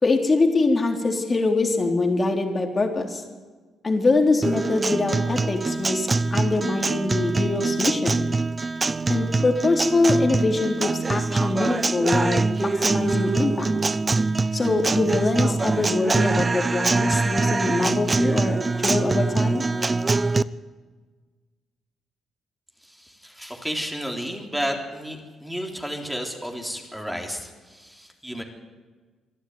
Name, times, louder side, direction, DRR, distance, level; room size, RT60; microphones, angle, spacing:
voice 1, 0.0-3.2 3.8-8.3 9.1-13.7 14.5-19.6, left 3 dB, 30° left, 3 dB, 3.5 m, -23 dB
Guitar, 4.4-20.4, right 3 dB, 25° right, 0.6 m, -24 dB
voice 2, 22.8-28.4, equal, 5° right, 2 dB, 3.6 m, -32 dB
24.5 x 12.0 x 9.7 m, 1.4 s
cardioid pair, 90°, 0 cm